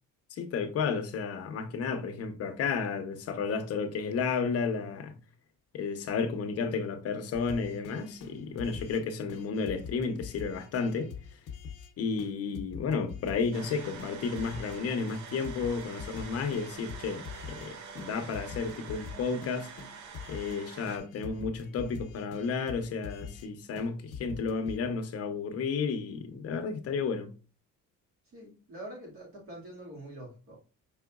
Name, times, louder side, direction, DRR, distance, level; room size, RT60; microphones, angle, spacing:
voice 1, 0.3-5.2 5.7-11.1 12.0-19.7 20.3-27.3, left 5 dB, 50° left, 0.8 m, -32 dB
sound 1, 7.3-9.0 9.3-11.9 12.2-12.3 12.5-14.8 15.1-17.7 18.0-18.1 18.3-20.6 20.9-23.5 23.8-23.9 24.1-24.8, left 6 dB, 80° left, 0.8 m, -44 dB
sound 2, 13.5-21.0, right 6 dB, 65° right, 0.7 m, -46 dB
voice 2, 28.3-30.6, right 1 dB, 45° right, 2.0 m, -45 dB
5.6 x 3.9 x 2.3 m
cardioid pair, 160°, 31 cm